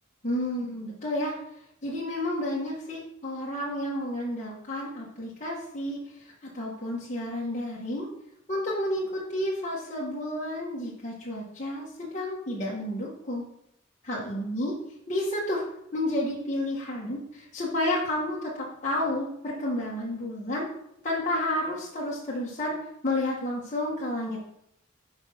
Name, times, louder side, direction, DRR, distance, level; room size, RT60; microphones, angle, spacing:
voice 1, 0.2-1.3 1.8-8.1 8.5-13.4 14.0-14.7 15.1-15.6 15.9-20.7 21.0-22.8 23.0-24.5, left 1 dB, 35° left, -5 dB, 1.5 m, -31 dB
6.4 x 5.0 x 5.6 m, 0.75 s
head